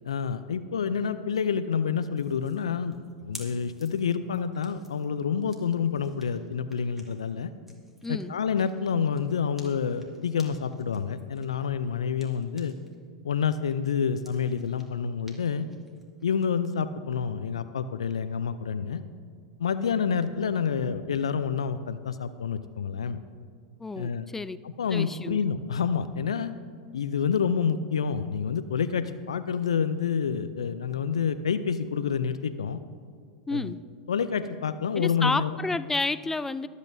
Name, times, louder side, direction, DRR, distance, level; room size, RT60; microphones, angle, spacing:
voice 1, 0.1-7.5 8.1-12.7 13.2-15.7 16.2-19.0 19.6-23.2 24.0-24.3 24.8-26.5 26.9-32.8 33.5-33.7 34.1-35.5, left 6 dB, 80° left, 12 dB, 0.4 m, -28 dB
sound 1, 2.2-13.0 13.3-16.5, equal, 10° right, 2.0 m, -53 dB
voice 2, 8.0-8.4 23.8-24.6 24.9-25.4 33.5-33.8 34.9-36.7, left 3 dB, 10° left, 15 dB, 0.3 m, -30 dB
23.0 x 8.2 x 2.7 m, 2.1 s
hypercardioid pair, 95°, 3 cm